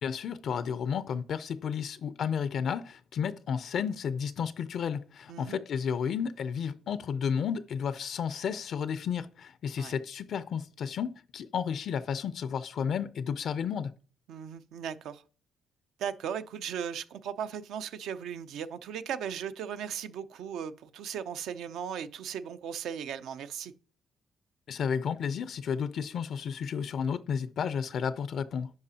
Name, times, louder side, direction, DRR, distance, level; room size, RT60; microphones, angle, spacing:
voice 1, 0.0-13.9 24.7-28.7, left 7 dB, 65° left, 0.4 m, -32 dB
voice 2, 14.3-15.2 16.0-23.7, right 8 dB, 80° right, 0.5 m, -37 dB
10.5 x 4.8 x 2.8 m
cardioid pair, 90°, 0 cm